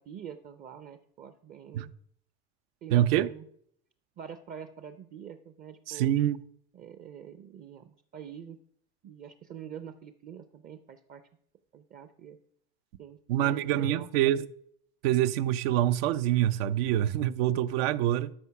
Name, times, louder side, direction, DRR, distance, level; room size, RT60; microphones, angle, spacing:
voice 1, 0.0-1.9 2.8-3.4 4.2-6.1 6.7-8.6 9.0-11.2 11.7-12.4 13.0-14.1, right 8 dB, 30° right, 0.5 m, -45 dB
voice 2, 2.9-3.3 5.9-6.4 13.3-14.5 15.0-18.3, right 12 dB, 80° right, 0.6 m, -25 dB
13.0 x 4.7 x 5.8 m
supercardioid pair, 145°, 29 cm